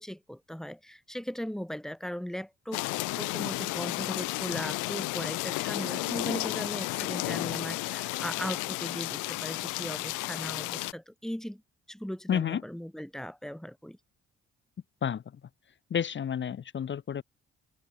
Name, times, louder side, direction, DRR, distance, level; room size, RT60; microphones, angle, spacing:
voice 1, 0.0-2.8 3.2-11.6 11.9-14.0, equal, ahead, 3.0 m, -38 dB
sound 1, 2.7-10.9, left 23 dB, 85° left, 0.7 m, -33 dB
voice 2, 12.3-12.6 15.0-15.4 15.9-17.2, left 8 dB, 40° left, 0.6 m, -30 dB
open air
hypercardioid pair, 50°, 30 cm